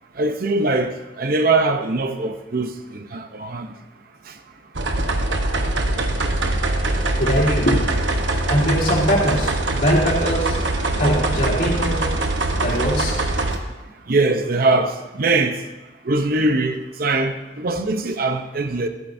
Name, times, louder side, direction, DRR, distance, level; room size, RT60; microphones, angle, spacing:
voice 1, 0.2-3.7 14.1-15.6 16.1-18.9, right 2 dB, 55° right, 0.7 m, -22 dB
sound 1, 4.7-13.6, right 2 dB, 85° right, 1.0 m, -22 dB
voice 2, 7.2-7.8 8.5-10.6 10.9-12.1 12.6-13.2, equal, 50° left, 2.9 m, -21 dB
14.0 x 12.5 x 2.7 m
head